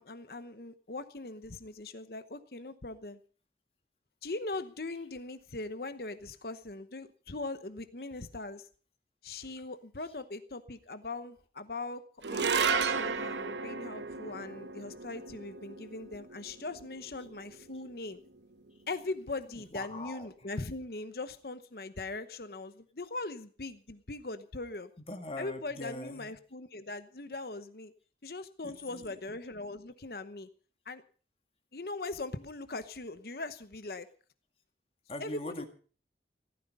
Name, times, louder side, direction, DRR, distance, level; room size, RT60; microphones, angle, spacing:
voice 1, 0.0-3.2 4.2-8.7 9.2-18.2 18.9-24.9 25.4-27.9 28.2-30.5 30.9-31.0 31.7-34.1 35.2-35.6, left 2 dB, 60° left, 11 dB, 1.0 m, -40 dB
sound 1, 12.2-18.7, right 5 dB, 85° right, 1.0 m, -34 dB
voice 2, 19.5-20.5 25.1-26.3 28.6-29.3 35.1-35.7, left 2 dB, 35° left, 6 dB, 1.9 m, -43 dB
15.5 x 14.0 x 5.4 m, 0.41 s
head